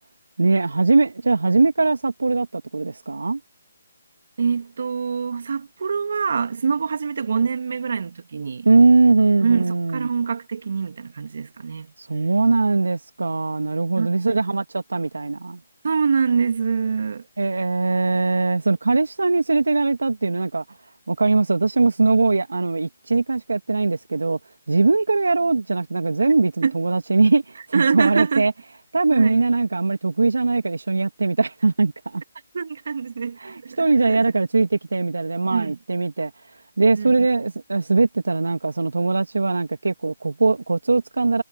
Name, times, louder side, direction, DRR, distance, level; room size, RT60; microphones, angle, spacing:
voice 1, 0.4-3.4 8.6-10.1 12.0-15.6 17.4-20.6 21.1-24.4 24.7-28.5 28.9-32.2 33.4-36.3 36.8-41.4, right 3 dB, 80° right, 2.5 m, -20 dB
voice 2, 4.4-8.7 9.4-11.9 14.0-14.4 15.8-17.2 26.6-26.7 27.7-28.5 29.1-29.4 32.5-34.2 35.5-35.8 37.0-37.3, right 5 dB, 60° right, 2.4 m, -24 dB
figure-of-eight pair, 150°, 0 cm